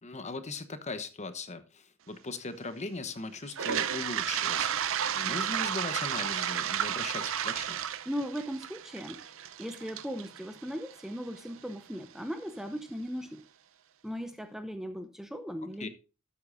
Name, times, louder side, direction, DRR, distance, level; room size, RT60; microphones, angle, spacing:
voice 1, 0.0-7.8 15.6-15.9, left 3 dB, 35° left, 1.0 m, -39 dB
Toilet flush, 3.5-11.4, right 9 dB, 65° right, 0.7 m, -32 dB
voice 2, 8.1-9.2 9.6-13.5 14.0-15.9, equal, ahead, 0.7 m, -38 dB
12.5 x 8.3 x 2.6 m
head